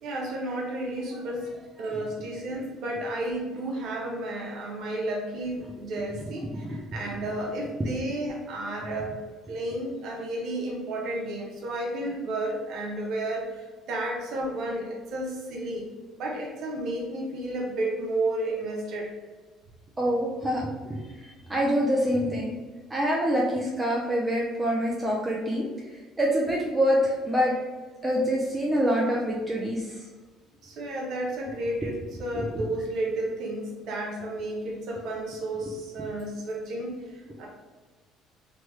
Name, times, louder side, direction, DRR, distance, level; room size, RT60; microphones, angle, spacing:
voice 1, 0.0-1.5 1.8-9.2 9.5-15.9 16.2-19.1 30.6-37.5, right 1 dB, 65° right, -1 dB, 0.6 m, -32 dB
voice 2, 20.0-22.6 22.9-25.7 26.2-27.5 28.0-29.9 32.4-32.5, equal, 15° right, -3 dB, 0.5 m, -25 dB
3.0 x 2.2 x 3.1 m, 1.3 s
cardioid pair, 110°, 0 cm